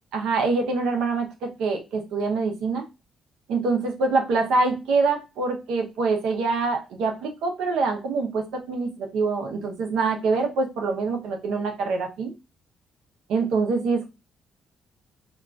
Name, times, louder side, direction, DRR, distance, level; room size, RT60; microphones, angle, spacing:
voice 1, 0.1-2.8 3.5-12.3 13.3-14.1, right 4 dB, 85° right, 4 dB, 0.6 m, -25 dB
3.7 x 2.3 x 2.2 m, 0.27 s
cardioid pair, 90°, 0 cm